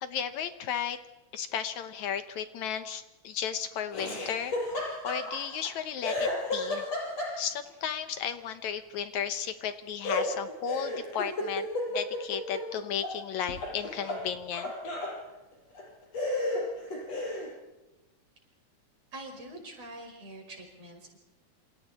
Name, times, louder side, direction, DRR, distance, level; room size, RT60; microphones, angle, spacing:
voice 1, 0.0-1.0 1.3-4.5 5.0-6.9 7.4-11.7 11.9-14.7, left 8 dB, 70° left, 10 dB, 2.2 m, -34 dB
Laughter, 3.9-5.7 6.0-7.7 10.0-13.2 13.5-15.2 15.7-15.8 16.1-17.5, left 2 dB, 55° left, 7.3 m, -33 dB
voice 2, 19.1-21.2, right 1 dB, 50° right, 1 dB, 6.5 m, -45 dB
28.0 x 27.5 x 4.3 m, 1.1 s
omnidirectional pair, 3.6 m